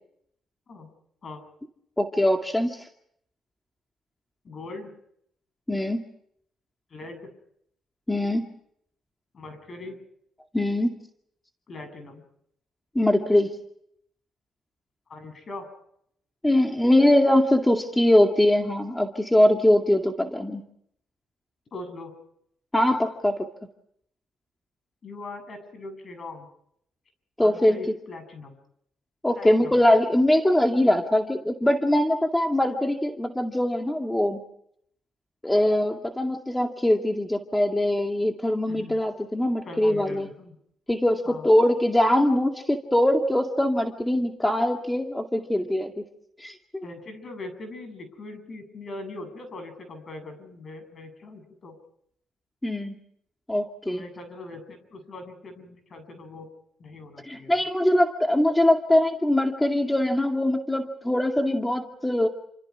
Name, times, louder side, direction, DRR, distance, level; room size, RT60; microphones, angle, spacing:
voice 1, 2.0-2.9 5.7-6.0 8.1-8.4 10.5-10.9 13.0-13.6 16.4-20.6 22.7-23.4 27.4-27.8 29.2-34.4 35.4-40.3 40.9-46.0 46.4-46.8 52.6-52.9 53.5-54.0 57.2-62.3, left 1 dB, 10° left, 3 dB, 2.2 m, -22 dB
voice 2, 4.4-4.9 6.9-7.3 9.3-10.0 11.7-12.2 15.1-15.7 21.7-22.1 25.0-26.5 27.4-28.6 29.3-29.8 38.7-39.0 39.6-40.6 41.2-41.5 46.8-51.8 53.8-56.5 56.8-57.6, left 2 dB, 45° left, 8 dB, 8.0 m, -41 dB
29.5 x 27.5 x 4.9 m, 0.72 s
cardioid pair, 90°, 0 cm